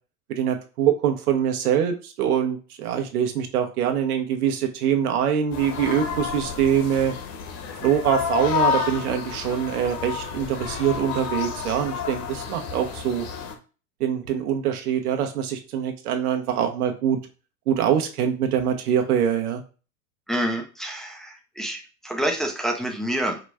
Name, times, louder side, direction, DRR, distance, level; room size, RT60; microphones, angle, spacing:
voice 1, 0.3-7.1 7.8-13.3 14.0-17.2 17.7-19.6, right 9 dB, 80° right, 5 dB, 1.1 m, -24 dB
sound 1, 5.5-13.5, left 7 dB, 35° left, 0.9 m, -30 dB
voice 2, 20.3-23.4, right 1 dB, ahead, 1 dB, 0.3 m, -28 dB
5.0 x 2.2 x 4.8 m, 0.34 s
hypercardioid pair, 120°, 44 cm